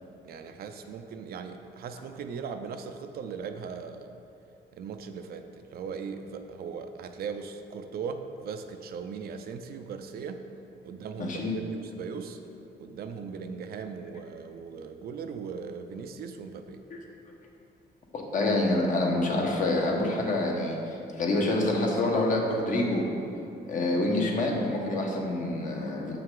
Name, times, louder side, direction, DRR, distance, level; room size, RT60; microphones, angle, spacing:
voice 1, 0.3-4.1 4.7-10.5 10.8-12.4 12.8-16.8, right 6 dB, 60° right, 7 dB, 0.5 m, -38 dB
voice 2, 11.2-11.5 16.9-17.0 18.1-23.1 23.7-26.2, left 2 dB, 50° left, 0 dB, 1.1 m, -27 dB
7.5 x 5.7 x 3.8 m, 2.9 s
cardioid pair, 145°, 18 cm